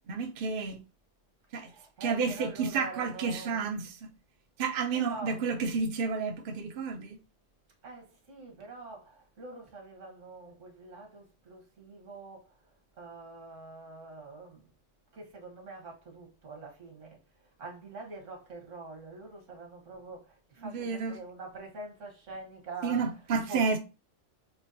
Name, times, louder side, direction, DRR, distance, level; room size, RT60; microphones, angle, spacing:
voice 1, 0.1-0.8 1.5-1.7 2.0-4.1 4.6-7.2 20.6-21.2 22.8-23.8, right 5 dB, 55° right, 0.7 m, -31 dB
voice 2, 1.5-3.7 4.6-5.4 7.8-12.7 13.0-14.7 15.1-23.8, right 3 dB, 75° right, 1.6 m, -45 dB
6.2 x 3.0 x 2.6 m
omnidirectional pair, 1.3 m